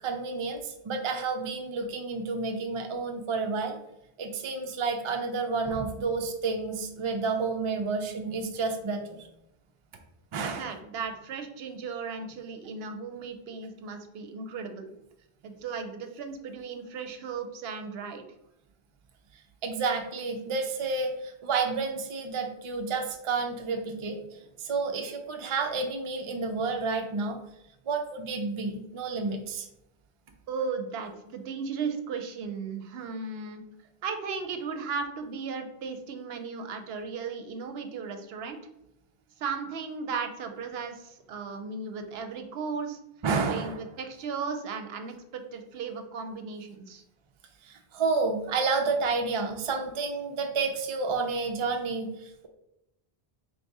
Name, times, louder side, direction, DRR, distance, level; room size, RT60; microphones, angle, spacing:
voice 1, 0.0-3.8 4.2-9.3 10.3-10.7 19.6-27.4 27.9-29.7 43.2-43.8 47.6-52.5, right 4 dB, 50° right, 5 dB, 0.3 m, -30 dB
voice 2, 10.4-14.9 15.4-18.3 30.5-33.6 34.0-38.6 39.4-43.0 43.5-47.0, right 5 dB, 70° right, 7 dB, 0.8 m, -36 dB
3.4 x 2.7 x 4.6 m, 0.85 s
omnidirectional pair, 1.1 m